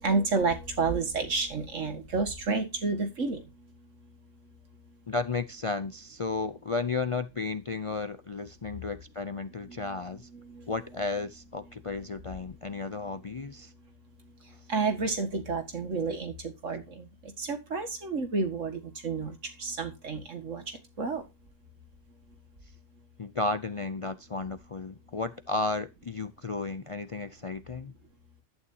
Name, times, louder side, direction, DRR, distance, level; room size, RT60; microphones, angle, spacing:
voice 1, 0.0-3.4 9.7-9.9 10.3-10.6 14.7-17.1 17.4-20.6 21.0-21.2, right 4 dB, 80° right, 2.2 m, -30 dB
voice 2, 5.1-10.3 10.7-13.7 23.2-27.9, left 3 dB, 40° left, 0.4 m, -33 dB
11.5 x 9.4 x 2.8 m
omnidirectional pair, 1.3 m